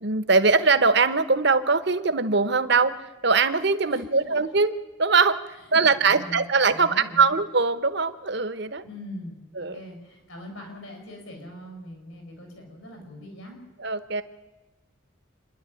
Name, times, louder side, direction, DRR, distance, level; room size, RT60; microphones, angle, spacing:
voice 1, 0.0-3.0 3.2-4.7 5.0-5.4 5.7-8.8 9.6-9.8 13.8-14.2, right 4 dB, 55° right, 13 dB, 1.0 m, -21 dB
voice 2, 3.9-4.3 5.6-6.4 6.7-7.3 8.8-13.6, left 1 dB, 75° left, 3 dB, 6.6 m, -41 dB
27.0 x 11.0 x 9.1 m, 1.2 s
head